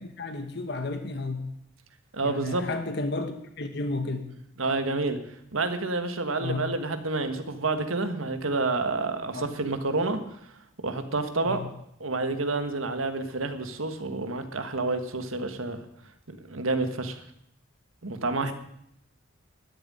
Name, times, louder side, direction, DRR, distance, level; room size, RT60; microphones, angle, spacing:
voice 1, 0.0-1.4 2.2-4.3 6.4-6.7 9.3-9.5 11.4-11.7 18.4-18.5, left 2 dB, 55° left, 7 dB, 1.2 m, -32 dB
voice 2, 2.1-2.6 4.6-5.2 5.5-10.2 10.8-11.6 12.0-15.8 16.5-17.2 18.0-18.5, right 3 dB, 90° right, 8 dB, 1.6 m, -29 dB
12.5 x 7.4 x 10.0 m, 0.75 s
head